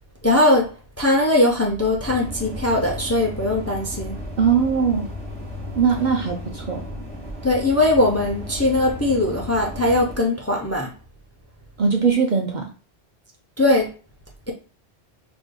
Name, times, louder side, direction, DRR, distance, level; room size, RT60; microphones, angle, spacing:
voice 1, 0.2-0.7 1.0-4.2 7.4-10.9 13.6-13.9, left 1 dB, 20° left, 0.5 m, -20 dB
sound 1, 2.0-10.2, left 1 dB, 30° right, 1.3 m, -34 dB
voice 2, 4.4-5.1 5.8-6.8 11.8-12.7, right 6 dB, 55° right, 0.6 m, -20 dB
5.0 x 2.6 x 2.2 m
omnidirectional pair, 1.1 m